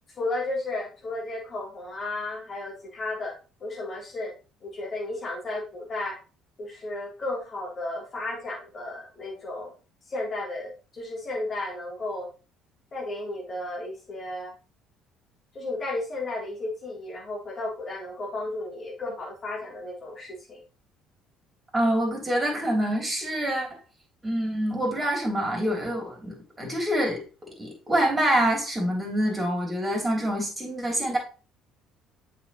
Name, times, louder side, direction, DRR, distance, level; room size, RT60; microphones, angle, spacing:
voice 1, 0.2-3.3 3.6-4.3 4.6-6.2 6.6-9.7 10.0-12.3 12.9-14.5 15.5-20.6, left 2 dB, 35° left, -3 dB, 3.3 m, -33 dB
voice 2, 21.7-23.8 24.2-27.2 27.6-31.2, right 1 dB, 15° right, 0 dB, 3.3 m, -26 dB
7.1 x 5.3 x 3.1 m, 0.34 s
figure-of-eight pair, 55°, 0 cm